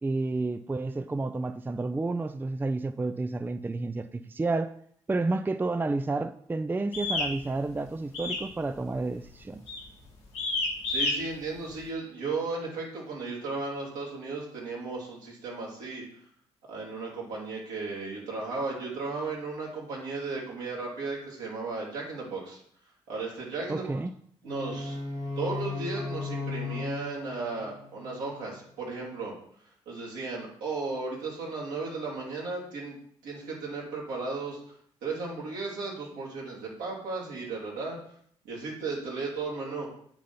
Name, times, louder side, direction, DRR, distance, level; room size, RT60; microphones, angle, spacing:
voice 1, 0.0-4.8 5.1-9.7 23.7-24.1, right 3 dB, 15° right, 0.4 m, -30 dB
sound 1, 6.9-7.3 8.1-8.5 8.8-9.1 9.7-9.9 10.3-11.1, left 3 dB, 80° left, 1.8 m, -29 dB
voice 2, 10.9-16.0 16.7-22.6 23.1-24.0 24.4-25.0 25.4-29.3 29.9-33.0 33.2-34.6 35.0-38.0 38.4-39.9, right 3 dB, 70° right, 2.4 m, -35 dB
sound 2, 24.4-28.5, left 3 dB, 85° right, 2.4 m, -36 dB
8.8 x 3.8 x 5.6 m
figure-of-eight pair, 40°, 14 cm